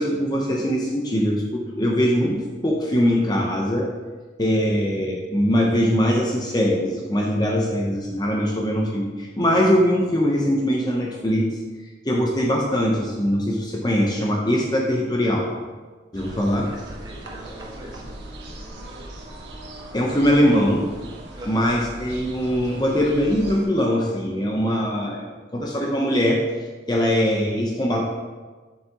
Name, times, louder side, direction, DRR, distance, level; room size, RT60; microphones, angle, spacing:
voice 1, 0.0-3.9 4.4-11.6 12.0-15.5 16.1-16.7 19.9-20.9 21.5-26.4 26.9-28.0, equal, 20° left, -2 dB, 0.7 m, -21 dB
sound 1, 16.1-23.7, right 1 dB, 70° right, 1.0 m, -39 dB
voice 2, 16.6-18.2 18.6-19.1 21.4-21.7, right 1 dB, 20° right, -3 dB, 1.4 m, -41 dB
7.2 x 7.1 x 2.9 m, 1.3 s
head